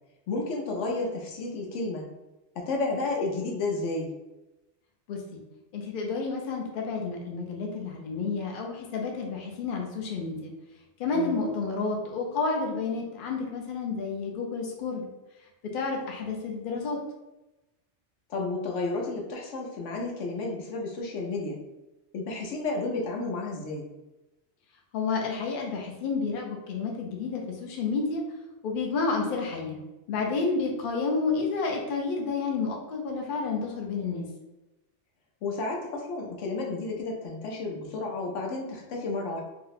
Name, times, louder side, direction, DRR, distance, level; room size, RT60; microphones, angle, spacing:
voice 1, 0.3-2.1 2.6-4.1 11.1-11.4 18.3-21.6 22.1-23.9 34.0-34.3 35.4-39.4, left 3 dB, 80° left, 0 dB, 1.0 m, -32 dB
voice 2, 5.1-5.4 5.7-10.5 11.0-15.1 15.7-17.0 24.9-28.2 28.6-29.8 30.1-34.3, left 4 dB, 55° left, 0 dB, 0.7 m, -30 dB
2.7 x 2.1 x 3.9 m, 1.0 s
omnidirectional pair, 1.2 m